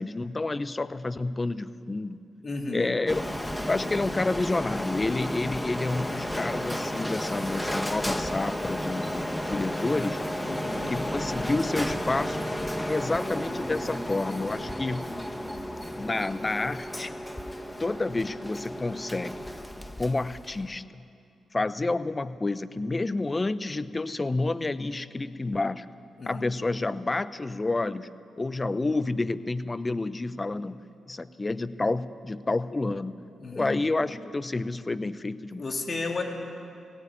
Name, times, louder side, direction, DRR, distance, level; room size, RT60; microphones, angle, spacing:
voice 1, 0.0-2.2 2.7-3.2 3.7-10.2 10.9-12.5 12.9-15.1 16.0-17.2 17.8-19.4 20.0-21.0 21.5-25.9 26.3-30.8 31.1-35.6, left 2 dB, 30° left, 14 dB, 0.9 m, -29 dB
voice 2, 2.4-2.9 10.5-10.9 26.2-26.4 33.4-33.7 35.6-36.2, left 3 dB, 45° left, 2 dB, 3.2 m, -33 dB
Printer, 3.1-20.7, equal, 10° left, 1.6 m, -33 dB
17.5 x 17.0 x 10.0 m, 2.5 s
supercardioid pair, 45°, 0 cm